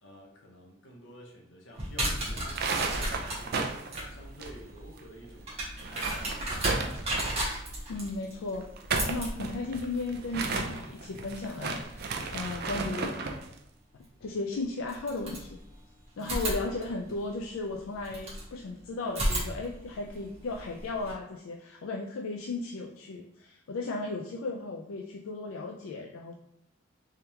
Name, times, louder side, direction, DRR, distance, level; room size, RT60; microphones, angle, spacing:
voice 1, 0.0-5.6 5.9-6.3 16.2-16.8, equal, 65° left, 0 dB, 0.9 m, -51 dB
sound 1, 1.7-12.5 14.0-14.1 14.8-15.8 16.2-18.5 19.1-21.1, right 1 dB, 30° right, 1.3 m, -35 dB
sound 2, 2.4-5.0 5.3-5.4 5.7-7.5 8.6-13.5, right 4 dB, 50° right, 0.4 m, -34 dB
voice 2, 7.9-8.7 9.1-13.2 14.2-15.6 16.2-26.4, left 3 dB, 85° left, 2 dB, 0.4 m, -35 dB
3.6 x 3.3 x 2.8 m, 0.79 s
head